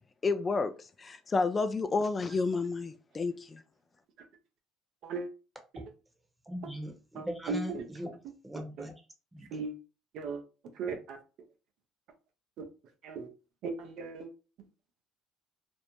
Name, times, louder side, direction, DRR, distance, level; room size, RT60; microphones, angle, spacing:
voice 1, 0.2-0.7 1.0-3.6, left 4 dB, 30° left, 0.3 m, -30 dB
voice 2, 6.5-8.1 8.4-8.9 9.3-9.5, equal, 10° right, 0.9 m, -39 dB
voice 3, 7.1-7.9 8.8-8.9 9.5-9.7 10.1-10.4 10.7-11.2 12.6-12.7 13.0-13.3 13.6-14.3, right 4 dB, 60° right, 0.5 m, -37 dB
2.5 x 2.0 x 3.0 m
hypercardioid pair, 65°, 0 cm